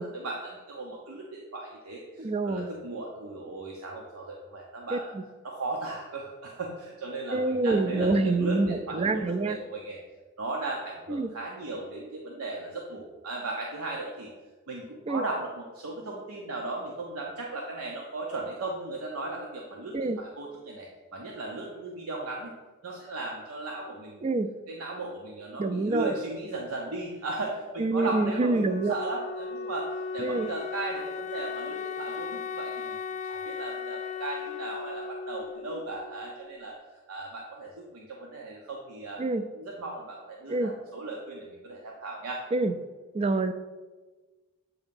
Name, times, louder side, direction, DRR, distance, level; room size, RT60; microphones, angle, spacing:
voice 1, 0.0-5.1 5.4-10.0 10.4-14.3 14.7-22.5 22.8-24.3 24.7-33.0 33.2-36.8 37.1-39.2 39.5-42.4, right 2 dB, 85° right, -2 dB, 0.8 m, -36 dB
voice 2, 2.2-2.7 4.9-5.0 7.3-9.6 11.1-11.3 15.1-15.2 19.9-20.2 24.2-24.5 25.6-26.1 27.8-29.0 30.2-30.5 39.2-39.4 40.5-40.7 42.5-42.7 43.1-43.5, right 3 dB, 30° right, 11 dB, 0.3 m, -26 dB
Wind instrument woodwind instrument, 28.0-36.6, left 6 dB, 35° left, 0.5 m, -37 dB
8.0 x 2.8 x 5.2 m, 1.3 s
head